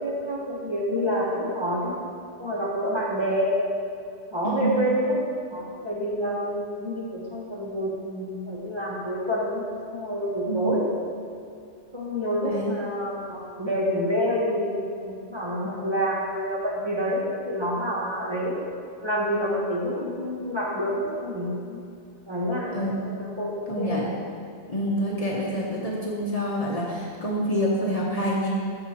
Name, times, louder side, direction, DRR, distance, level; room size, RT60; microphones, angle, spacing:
voice 1, 0.0-1.9 2.4-3.5 4.3-5.1 5.5-9.6 9.9-10.8 11.9-18.5 19.0-21.8 22.3-22.7 23.0-24.0, equal, 25° right, -5 dB, 1.2 m, -28 dB
voice 2, 4.4-4.9 10.5-10.8 12.4-12.7 22.7-22.9 23.7-24.1 24.7-28.5, equal, 40° left, -4 dB, 1.0 m, -27 dB
13.0 x 4.8 x 3.0 m, 2.5 s
omnidirectional pair, 1.1 m